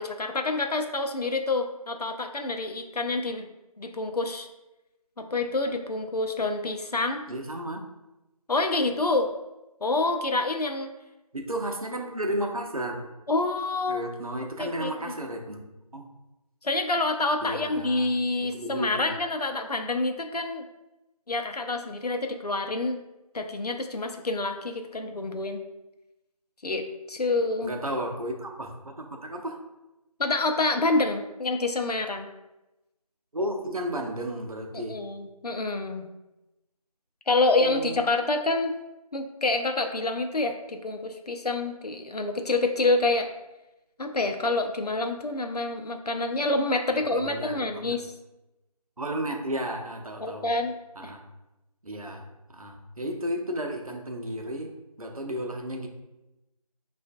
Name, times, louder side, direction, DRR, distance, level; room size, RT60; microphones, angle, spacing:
voice 1, 0.0-3.5 3.8-4.5 5.2-7.2 8.5-9.3 9.8-10.9 13.3-14.0 14.6-14.9 16.6-20.6 21.3-23.0 23.3-25.6 26.6-27.7 30.2-32.3 34.7-36.1 37.3-38.7 39.1-43.3 44.0-48.1 50.2-50.8 51.0-51.1, left 2 dB, 85° left, 5 dB, 0.6 m, -27 dB
voice 2, 7.3-7.8 11.3-13.1 13.9-15.6 15.9-16.1 17.4-18.1 18.4-19.2 27.6-29.6 33.3-35.0 37.5-38.0 46.9-48.0 49.0-50.5 51.0-51.2 51.8-52.3 52.5-54.7 55.0-55.9, right 1 dB, 65° right, 2 dB, 0.7 m, -33 dB
5.5 x 2.4 x 2.3 m, 0.97 s
figure-of-eight pair, 180°, 20 cm